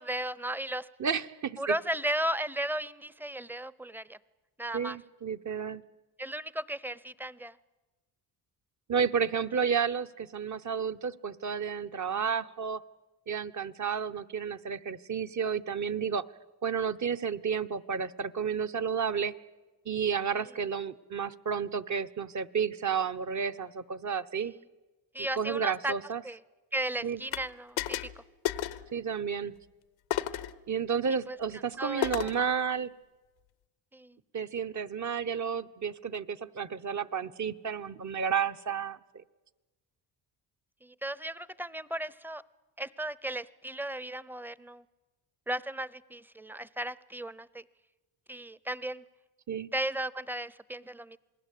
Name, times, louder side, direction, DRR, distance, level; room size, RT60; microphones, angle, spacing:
voice 1, 0.0-0.9 1.6-4.2 4.6-5.0 6.2-7.6 24.4-24.6 25.1-25.9 26.2-26.4 26.7-28.2 31.3-31.4 31.8-32.3 33.9-34.2 40.8-42.4 42.8-44.8 45.5-47.6 48.3-49.0 49.7-51.2, right 1 dB, 5° right, 20 dB, 0.7 m, -35 dB
voice 2, 1.0-1.7 4.7-5.8 8.9-12.8 13.3-16.2 16.6-19.3 19.8-24.5 25.2-26.2 27.0-27.2 28.9-29.5 30.7-32.9 34.3-39.0 49.5-49.7, right 7 dB, 40° right, 10 dB, 1.0 m, -31 dB
sound 1, 27.3-27.5 27.8-28.2 28.4-28.9 30.1-30.6 32.0-32.4, left 13 dB, 85° left, 1.1 m, -32 dB
27.5 x 19.5 x 8.5 m, 1.2 s
cardioid pair, 75°, 45 cm